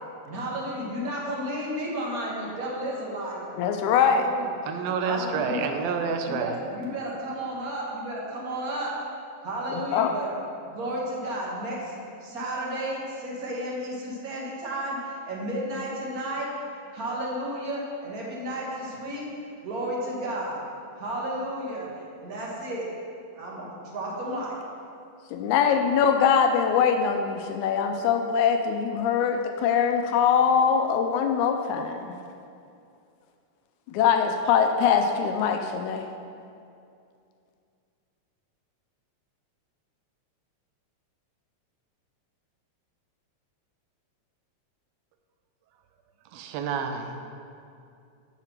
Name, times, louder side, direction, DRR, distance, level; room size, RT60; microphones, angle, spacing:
voice 1, 0.2-3.6 4.0-4.5 5.0-5.7 6.3-8.9 9.4-10.3 10.7-11.9 12.2-16.5 16.9-19.3 19.6-20.6 21.0-21.9 22.2-22.9 23.3-24.6, right 1 dB, 40° right, -4 dB, 1.4 m, -32 dB
voice 2, 3.6-4.3 9.7-10.1 25.3-32.2 33.9-36.1, left 7 dB, 85° left, 5 dB, 2.0 m, -23 dB
voice 3, 4.7-6.6 46.3-47.1, right 5 dB, 75° right, 5 dB, 1.7 m, -29 dB
8.0 x 5.8 x 5.9 m, 2.5 s
omnidirectional pair, 3.4 m